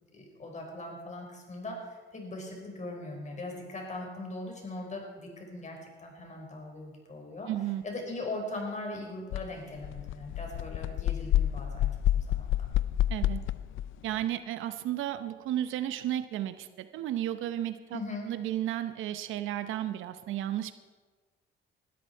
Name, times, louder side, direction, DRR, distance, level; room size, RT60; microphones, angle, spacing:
voice 1, 0.1-7.5 7.8-12.7 17.9-18.3, left 2 dB, 35° left, 1 dB, 5.0 m, -40 dB
voice 2, 7.5-7.8 13.1-13.4 14.0-18.0 18.3-20.7, right 12 dB, 90° right, 11 dB, 0.8 m, -33 dB
sound 1, 9.3-9.4 9.8-13.9, left 12 dB, 80° left, 0.5 m, -28 dB
19.5 x 13.0 x 4.6 m, 1.4 s
cardioid pair, 90°, 20 cm